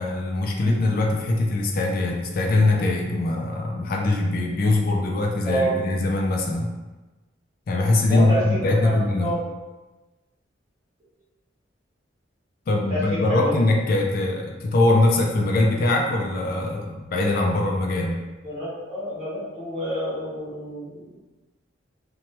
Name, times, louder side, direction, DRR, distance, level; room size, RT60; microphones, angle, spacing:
voice 1, 0.0-6.7 7.7-9.3 12.7-18.2, left 2 dB, 50° left, 1 dB, 0.3 m, -22 dB
voice 2, 8.1-9.4 12.9-13.5 18.4-21.1, equal, 35° right, -10 dB, 1.2 m, -28 dB
2.9 x 2.2 x 2.9 m, 1.2 s
head